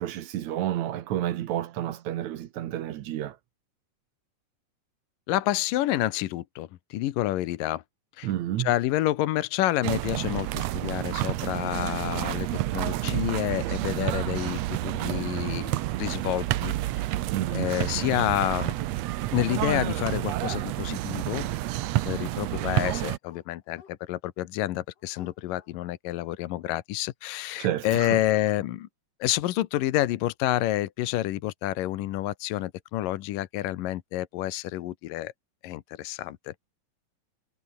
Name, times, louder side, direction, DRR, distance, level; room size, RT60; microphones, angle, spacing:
voice 1, 0.0-3.4 8.2-8.7 17.3-17.7 27.6-28.2, right 12 dB, 65° right, 2.2 m, -30 dB
voice 2, 5.3-7.8 8.2-8.3 8.6-12.5 12.7-16.8 17.5-18.8 19.3-21.5 22.1-28.9 29.2-35.3 35.6-36.5, left 15 dB, 75° left, 2.6 m, -29 dB
sound 1, 9.8-23.2, right 15 dB, 85° right, 1.5 m, -29 dB
Dog, 19.8-20.7 21.8-23.9 24.6-24.7 25.0-25.7, left 7 dB, 50° left, 3.2 m, -51 dB
omnidirectional pair, 4.0 m